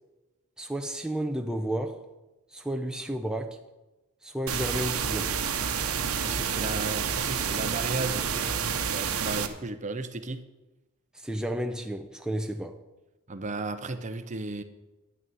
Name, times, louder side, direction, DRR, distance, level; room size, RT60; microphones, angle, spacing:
voice 1, 0.6-2.0 2.5-3.6 4.2-5.4 11.1-12.8, right 1 dB, 5° right, 0.6 m, -32 dB
sound 1, 4.5-9.5, right 7 dB, 75° right, 1.0 m, -29 dB
voice 2, 6.0-10.4 13.3-14.6, right 3 dB, 35° right, 0.8 m, -35 dB
11.0 x 6.5 x 9.1 m
head